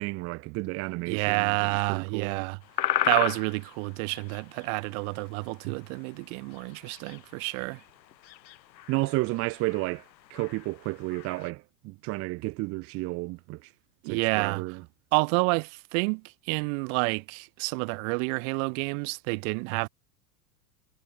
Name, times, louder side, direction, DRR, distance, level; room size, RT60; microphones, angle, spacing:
voice 1, 0.0-2.5 8.9-10.0 10.3-13.7 14.0-14.8, right 23 dB, 30° right, 0.5 m, -32 dB
voice 2, 1.1-2.6 3.0-7.8 14.0-14.6 15.1-19.9, right 40 dB or more, 50° right, 1.4 m, -29 dB
sound 1, 2.6-5.8 6.2-6.3 6.5-11.5, left 12 dB, 85° left, 1.0 m, -34 dB
hypercardioid pair, 100°, 50 cm